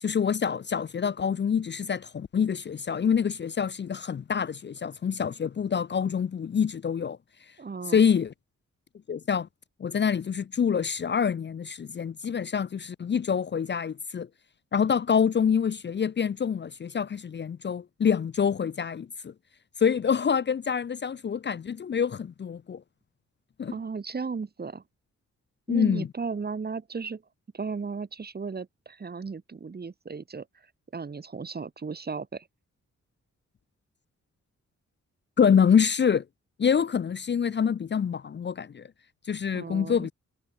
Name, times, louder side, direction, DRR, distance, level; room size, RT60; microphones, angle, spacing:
voice 1, 0.0-7.2 7.9-8.3 9.1-9.5 9.8-14.3 14.7-19.3 19.8-22.8 23.6-23.7 25.7-26.1 35.4-36.2 36.6-38.9 39.3-40.1, left 7 dB, 40° left, 0.6 m, -26 dB
voice 2, 7.6-8.1 23.7-24.8 25.7-27.2 27.5-30.5 30.9-32.5 39.5-40.1, right 5 dB, 35° right, 3.1 m, -35 dB
wide cardioid pair, 180°, 29 cm